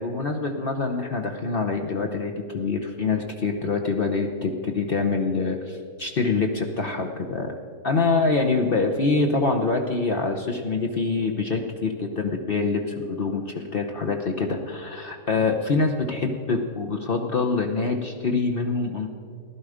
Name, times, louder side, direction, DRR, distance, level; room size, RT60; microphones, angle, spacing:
voice 1, 0.0-7.5 7.8-19.1, left 3 dB, 45° left, 3 dB, 0.8 m, -25 dB
15.5 x 11.5 x 5.0 m, 2.3 s
omnidirectional pair, 1.6 m